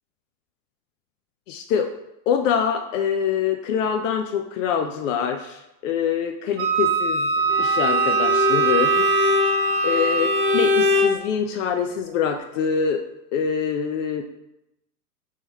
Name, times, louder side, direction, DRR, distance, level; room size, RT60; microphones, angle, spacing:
voice 1, 1.5-1.9 2.3-7.3 7.6-9.4 9.8-10.3 10.5-13.0 13.3-14.2, left 7 dB, 55° left, 5 dB, 0.5 m, -25 dB
Wind instrument woodwind instrument, 6.6-10.8, right 4 dB, 45° right, 0.7 m, -22 dB
Bowed string instrument, 7.5-11.2, left 3 dB, 5° right, 0.4 m, -22 dB
3.7 x 3.2 x 4.1 m, 0.86 s
hypercardioid pair, 115°, 47 cm